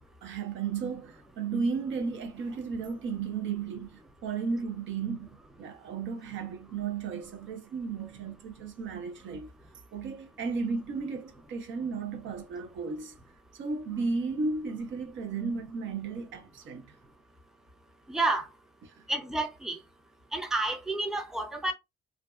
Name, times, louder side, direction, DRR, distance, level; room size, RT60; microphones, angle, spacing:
voice 1, 0.2-5.3 5.6-9.5 9.9-13.2 13.5-17.0 18.8-19.0, right 4 dB, 70° right, 0.7 m, -34 dB
voice 2, 18.1-18.5 19.1-19.8 20.3-21.7, right 2 dB, ahead, 0.5 m, -30 dB
2.5 x 2.2 x 2.3 m
cardioid pair, 90°, 20 cm